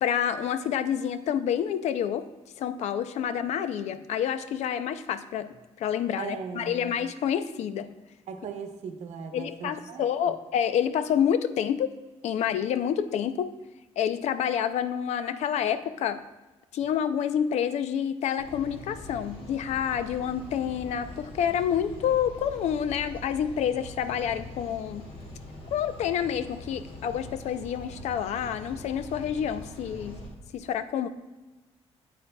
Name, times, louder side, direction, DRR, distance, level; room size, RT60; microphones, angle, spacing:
voice 1, 0.0-2.2 2.6-7.9 9.3-11.9 12.2-13.6 14.0-16.2 16.7-25.0 25.7-30.2 30.5-31.1, left 9 dB, 75° left, 12 dB, 0.5 m, -28 dB
voice 2, 6.2-6.9 8.3-10.1, right 6 dB, 85° right, 6 dB, 0.8 m, -38 dB
sound 1, 18.4-30.3, left 1 dB, 50° left, 1.8 m, -43 dB
8.5 x 8.3 x 2.2 m, 1.1 s
cardioid pair, 165°, 11 cm